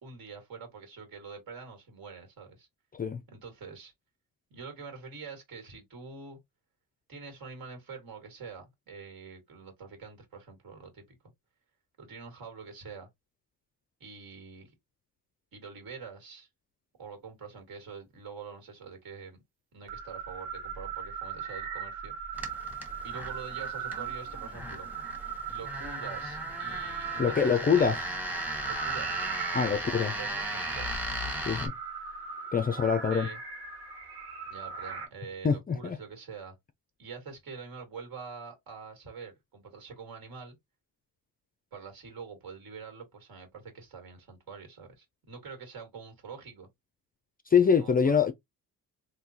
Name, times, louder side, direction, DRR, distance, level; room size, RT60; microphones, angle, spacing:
voice 1, 0.0-2.7 3.3-3.9 4.5-6.4 7.1-11.2 12.0-13.1 14.0-14.7 15.5-16.5 17.0-19.4 19.7-22.2 23.0-24.9 25.5-27.9 28.6-29.3 29.7-31.0 33.1-33.4 34.5-36.5 37.0-40.6 41.7-46.7 47.8-48.1, right 5 dB, 65° right, 2.0 m, -45 dB
sound 1, 19.9-35.1, right 6 dB, 85° right, 1.4 m, -39 dB
sound 2, 22.3-31.7, right 1 dB, 5° right, 1.0 m, -37 dB
voice 2, 27.2-28.0 29.5-30.1 31.5-31.7 32.5-33.3 35.4-36.0 47.5-48.3, left 6 dB, 25° left, 0.4 m, -24 dB
3.7 x 2.7 x 2.8 m
cardioid pair, 120°, 38 cm